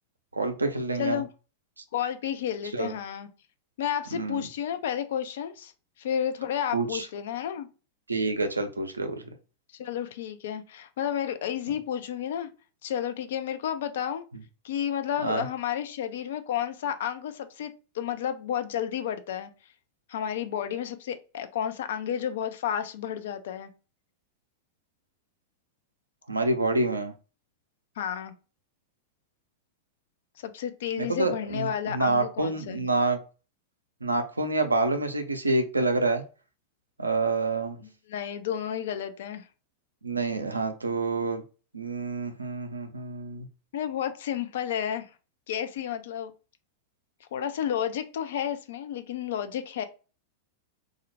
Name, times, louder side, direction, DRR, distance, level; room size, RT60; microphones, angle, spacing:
voice 1, 0.3-1.2 2.7-2.9 4.1-4.4 6.7-7.0 8.1-9.3 15.2-15.4 26.3-27.1 31.0-33.2 34.0-36.2 37.0-37.8 40.0-41.4 41.7-43.5, right 3 dB, 80° right, 7 dB, 0.4 m, -27 dB
voice 2, 1.9-3.3 3.8-5.7 6.0-7.7 9.7-12.5 12.8-14.2 14.6-19.5 20.1-23.7 28.0-28.3 30.4-32.8 38.1-39.5 43.7-45.1 45.5-46.3 47.2-49.9, left 9 dB, 60° left, 10 dB, 0.3 m, -31 dB
2.4 x 2.0 x 2.7 m, 0.33 s
figure-of-eight pair, 90°, 0 cm